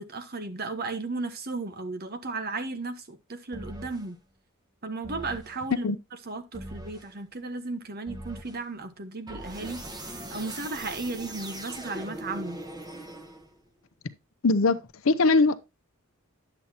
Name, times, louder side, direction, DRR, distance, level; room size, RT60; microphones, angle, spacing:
voice 1, 0.0-4.2 4.8-5.9 6.3-12.6, right 3 dB, 45° right, 1.2 m, -35 dB
sound 1, 3.5-4.1 5.0-5.6 6.5-7.1 8.1-8.6 9.3-13.7, right 1 dB, 20° right, 1.2 m, -40 dB
voice 2, 14.4-15.6, left 3 dB, 70° left, 0.7 m, -21 dB
10.5 x 7.9 x 2.9 m
head